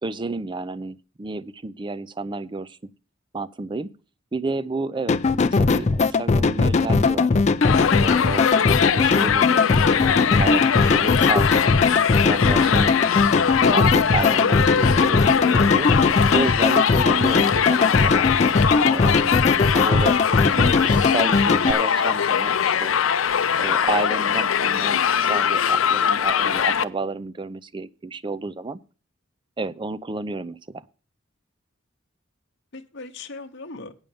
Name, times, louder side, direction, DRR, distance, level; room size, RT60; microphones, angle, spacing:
voice 1, 0.0-2.8 3.3-3.9 4.3-7.3 8.0-9.7 9.9-11.6 12.1-13.0 13.5-15.9 16.3-18.3 18.9-20.2 20.5-23.0 23.6-28.8 29.6-30.8, right 3 dB, 25° right, 0.4 m, -31 dB
sound 1, 5.1-21.7, left 3 dB, 35° left, 0.4 m, -20 dB
Crowd, 7.6-26.8, left 8 dB, 90° left, 0.5 m, -21 dB
voice 2, 14.7-15.4 29.6-29.7 32.7-33.9, left 3 dB, 60° left, 0.9 m, -40 dB
9.0 x 6.4 x 6.9 m
head